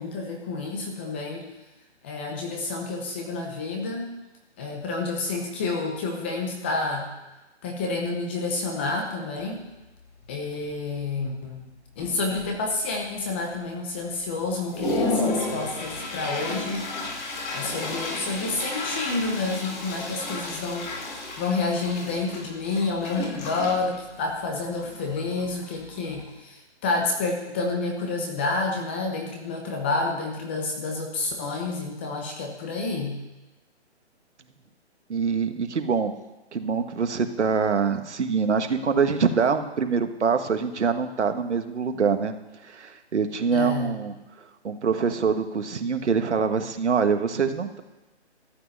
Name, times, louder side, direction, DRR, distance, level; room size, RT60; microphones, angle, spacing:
voice 1, 0.0-1.4 2.0-4.1 4.6-7.1 7.6-9.6 10.3-11.6 12.0-16.9 17.5-33.2 43.5-44.0, left 3 dB, 10° left, 1 dB, 0.7 m, -29 dB
Toilet flush, 9.4-9.5 10.0-10.2 10.5-11.1 11.6-11.7 12.0-12.7 13.2-13.3 13.8-13.9 14.4-26.3, left 2 dB, 45° left, 4.9 m, -33 dB
voice 2, 35.1-36.1 36.5-42.3 42.6-44.1 44.6-47.8, right 5 dB, 75° right, 8 dB, 1.6 m, -24 dB
13.5 x 6.2 x 9.7 m, 1.1 s
hypercardioid pair, 165°, 35 cm